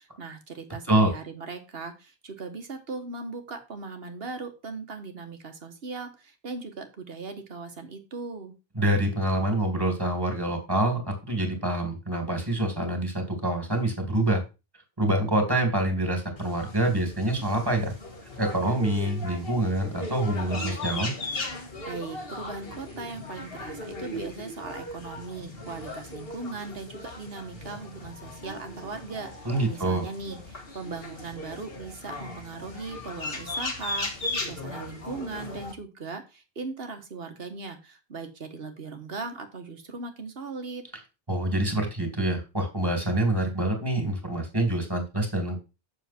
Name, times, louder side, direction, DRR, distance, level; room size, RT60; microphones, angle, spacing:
voice 1, 0.0-8.5 21.8-40.9, right 4 dB, 70° right, 6 dB, 1.5 m, -38 dB
voice 2, 8.8-14.4 15.0-17.9 18.4-21.1 29.4-30.0 41.3-45.6, right 1 dB, 20° right, 3 dB, 2.5 m, -26 dB
sound 1, 16.4-35.7, left 2 dB, 70° left, 1.9 m, -37 dB
7.4 x 6.7 x 4.3 m, 0.28 s
omnidirectional pair, 1.0 m